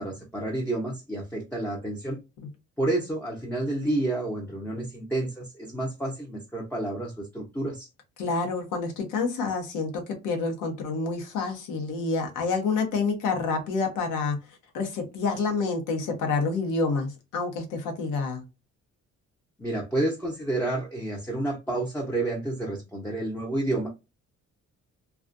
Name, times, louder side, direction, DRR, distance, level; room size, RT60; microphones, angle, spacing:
voice 1, 0.0-2.2 2.8-7.9 19.6-23.9, right 2 dB, 5° left, 0.7 m, -30 dB
voice 2, 8.2-14.4 14.7-18.4, left 4 dB, 90° left, 1.0 m, -28 dB
2.4 x 2.3 x 2.5 m
cardioid pair, 90°, 30 cm